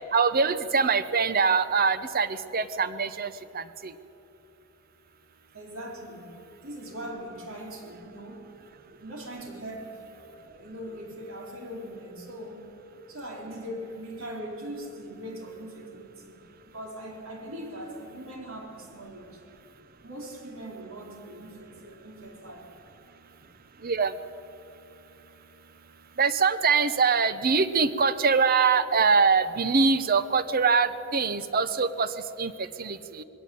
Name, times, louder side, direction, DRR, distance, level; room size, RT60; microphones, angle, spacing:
voice 1, 0.1-3.9 23.8-24.1 26.2-33.2, right 5 dB, 45° right, 13 dB, 0.8 m, -24 dB
voice 2, 5.5-6.3 6.6-8.5 9.0-12.7 13.1-16.4 16.6-19.4 20.0-22.7, equal, 70° right, 1 dB, 4.1 m, -40 dB
21.0 x 17.0 x 8.7 m, 3.0 s
head